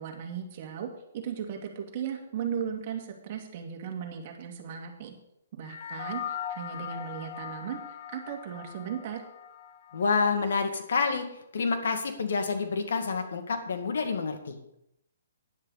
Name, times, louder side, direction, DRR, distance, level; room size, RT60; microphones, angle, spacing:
voice 1, 0.0-5.1 5.5-6.2 6.5-7.8 8.1-9.2, right 8 dB, 40° right, 3 dB, 2.2 m, -36 dB
sound 1, 5.6-10.3, left 8 dB, 40° left, 1.0 m, -40 dB
voice 2, 9.9-11.3 11.5-14.6, left 4 dB, 70° left, 6 dB, 2.1 m, -28 dB
12.5 x 10.5 x 4.1 m, 0.80 s
hypercardioid pair, 160°, 0 cm